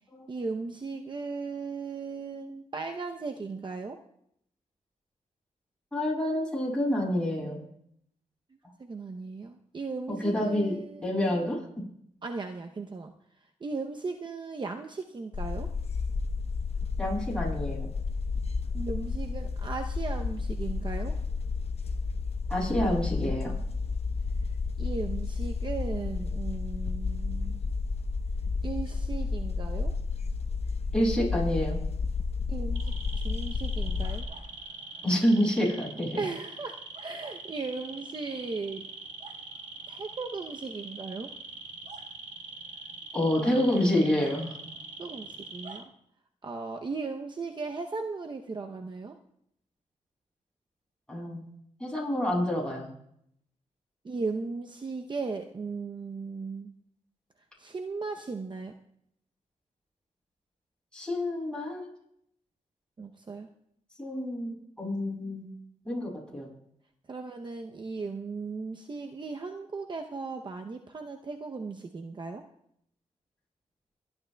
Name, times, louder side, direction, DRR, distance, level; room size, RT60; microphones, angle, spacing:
voice 1, 0.3-4.0 8.8-11.3 12.2-13.1 13.6-15.7 18.7-21.2 24.8-27.6 28.6-29.9 32.5-34.3 36.2-38.9 39.9-41.3 45.0-45.8 46.4-49.2 54.0-56.7 57.6-58.7 63.0-63.5 67.1-72.4, right 4 dB, 35° right, 4 dB, 0.7 m, -37 dB
voice 2, 5.9-7.6 10.1-11.8 17.0-17.9 22.5-23.5 30.9-31.8 35.0-36.2 43.1-44.6 51.1-51.5 51.8-52.9 60.9-61.9 64.0-65.5 65.8-66.5, left 1 dB, 5° left, -5 dB, 7.1 m, -28 dB
sound 1, 15.3-34.2, left 4 dB, 50° left, 0.9 m, -31 dB
sound 2, 32.7-45.8, right 3 dB, 65° right, 1.6 m, -43 dB
28.5 x 11.5 x 2.3 m, 0.72 s
cardioid pair, 85°, 13 cm